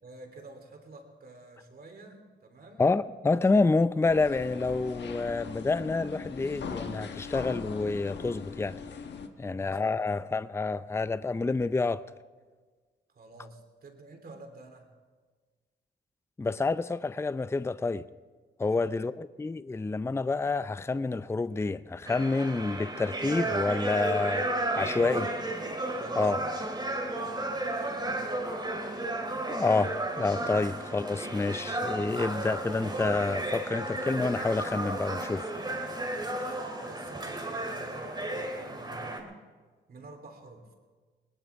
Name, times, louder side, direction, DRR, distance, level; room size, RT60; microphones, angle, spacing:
voice 1, 0.0-2.8 9.4-10.1 13.1-14.9 18.8-19.1 24.8-25.5 25.9-26.7 27.0-28.5 35.9-39.3 39.9-40.7, right 2 dB, 55° right, 3.3 m, -49 dB
voice 2, 2.8-8.8 9.4-12.0 16.4-18.0 18.6-24.5 24.7-25.2 26.2-26.4 29.5-35.4, left 3 dB, 15° left, 0.5 m, -28 dB
sound 1, 4.1-9.3, left 6 dB, 65° left, 1.3 m, -40 dB
sound 2, 22.1-39.2, right 1 dB, 25° right, 3.2 m, -33 dB
21.0 x 19.0 x 3.6 m
cardioid pair, 75°, 19 cm